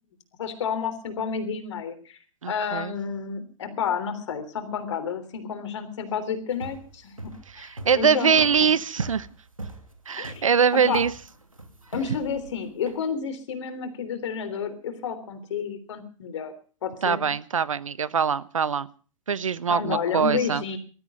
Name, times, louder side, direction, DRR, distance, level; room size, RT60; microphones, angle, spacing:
voice 1, 0.4-2.2 2.5-7.1 7.6-8.7 10.2-10.4 10.9-11.0 11.9-16.5 16.8-17.3 19.7-20.8, left 6 dB, 60° left, 10 dB, 3.5 m, -30 dB
voice 2, 2.4-2.9 7.5-9.3 10.1-11.1 17.0-18.9 19.3-20.6, right 6 dB, 75° right, 18 dB, 1.0 m, -23 dB
sound 1, 6.5-13.0, right 2 dB, 90° right, 2.7 m, -40 dB
19.5 x 13.5 x 5.3 m, 0.39 s
figure-of-eight pair, 100°, 17 cm